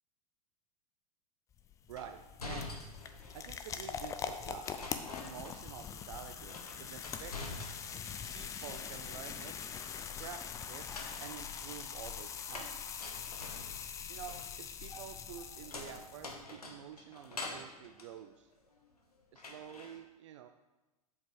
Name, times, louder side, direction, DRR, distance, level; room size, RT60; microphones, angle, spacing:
sound 1, 1.5-16.4, left 7 dB, 15° left, 0.4 m, -43 dB
voice 1, 1.9-2.7 3.3-4.7 5.2-7.6 8.3-9.5 10.2-10.9 11.2-12.8 14.1-18.5 19.3-20.5, right 9 dB, 55° right, 7 dB, 0.4 m, -49 dB
sound 2, 2.0-3.6 4.6-5.9 6.2-8.1 8.4-9.3 10.7-19.0 19.4-20.0, left 2 dB, 80° left, 1.1 m, -47 dB
7.1 x 5.3 x 4.8 m, 1.1 s
figure-of-eight pair, 95°, 19 cm